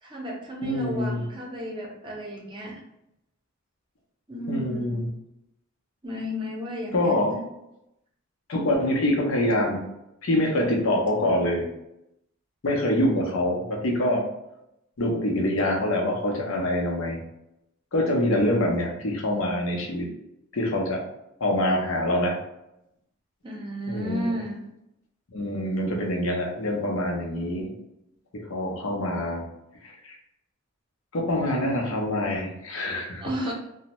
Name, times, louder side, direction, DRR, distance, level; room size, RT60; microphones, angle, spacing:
voice 1, 0.0-2.8 4.3-5.0 6.0-7.4 23.4-24.6 33.2-33.5, equal, 25° right, -2 dB, 0.6 m, -33 dB
voice 2, 0.6-1.2 4.5-5.1 6.9-7.4 8.5-9.8 10.2-11.6 12.6-14.2 15.0-17.2 17.9-20.1 20.5-21.0 21.4-22.4 23.9-24.3 25.3-27.8 28.5-29.4 29.8-30.2 31.1-33.2, left 1 dB, 70° left, 0 dB, 0.6 m, -25 dB
2.6 x 2.1 x 2.9 m, 0.85 s
head